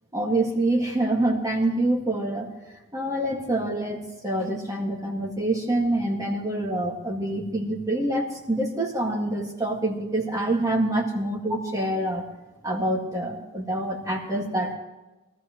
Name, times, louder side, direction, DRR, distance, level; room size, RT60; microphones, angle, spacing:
voice 1, 0.1-2.5 2.9-12.3 12.6-14.7, right 1 dB, 15° right, -1 dB, 1.9 m, -26 dB
22.0 x 14.0 x 3.1 m, 1.1 s
head